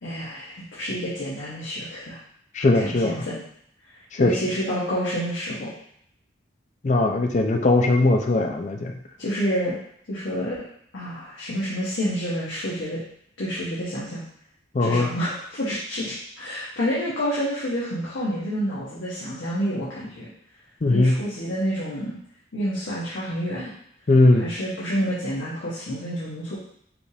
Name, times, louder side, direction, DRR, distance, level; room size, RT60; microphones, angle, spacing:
voice 1, 0.0-2.2 2.6-3.4 4.2-5.7 9.2-9.7 10.1-10.6 10.9-13.0 13.4-14.2 14.8-20.3 20.9-22.1 22.5-23.7 24.3-26.6, equal, 70° left, -8 dB, 1.0 m, -28 dB
voice 2, 2.5-3.2 4.2-4.4 6.8-8.9 14.7-15.1 20.8-21.1 24.1-24.5, left 2 dB, 35° left, 4 dB, 0.4 m, -19 dB
5.0 x 2.5 x 3.3 m, 0.69 s
head